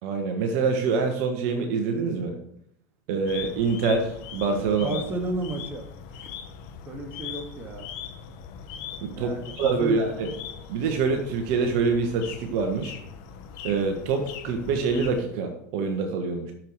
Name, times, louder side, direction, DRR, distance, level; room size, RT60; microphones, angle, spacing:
voice 1, 0.0-2.4 3.1-5.0 9.0-10.3 10.7-12.9 13.6-16.5, right 4 dB, 60° right, 5 dB, 1.4 m, -25 dB
sound 1, 3.3-15.2, left 7 dB, 55° left, 1.1 m, -40 dB
voice 2, 4.8-5.9 6.9-7.9 9.1-10.0, right 1 dB, 25° right, 2 dB, 2.1 m, -32 dB
6.7 x 6.5 x 6.3 m, 0.72 s
hypercardioid pair, 90°, 9 cm